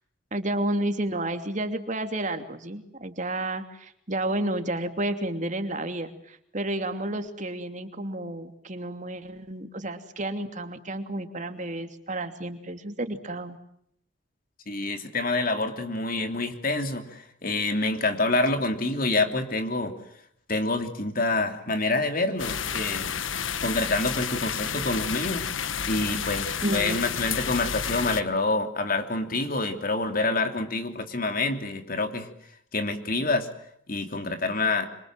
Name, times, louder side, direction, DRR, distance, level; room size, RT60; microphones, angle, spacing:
voice 1, 0.3-13.6 26.6-27.0, right 1 dB, 40° right, 7 dB, 2.8 m, -31 dB
voice 2, 14.7-19.9 20.5-23.1 23.6-25.5 25.9-32.3 32.7-33.5 33.9-34.9, left 2 dB, 45° left, 6 dB, 3.1 m, -27 dB
sound 1, 22.4-28.2, left 7 dB, 85° left, 1.4 m, -30 dB
27.5 x 27.0 x 7.5 m, 0.71 s
head